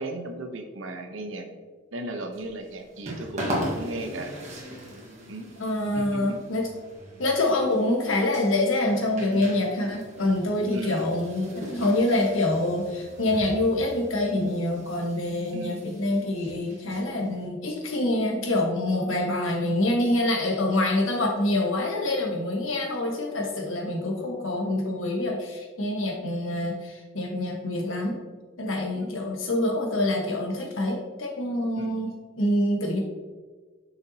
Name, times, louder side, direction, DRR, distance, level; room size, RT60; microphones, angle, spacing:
voice 1, 0.0-1.5 1.9-4.3 5.3-5.5 5.9-6.4 10.7-11.1 15.5-15.8 29.0-29.3 31.8-32.0, right 2 dB, 70° right, 5 dB, 0.8 m, -36 dB
sound 1, 2.3-17.5, equal, 35° right, 1.4 m, -39 dB
voice 2, 5.6-6.7 7.2-28.2 28.6-32.1 32.4-33.0, left 1 dB, 75° left, 0 dB, 1.3 m, -26 dB
6.8 x 5.7 x 2.8 m, 1.4 s
head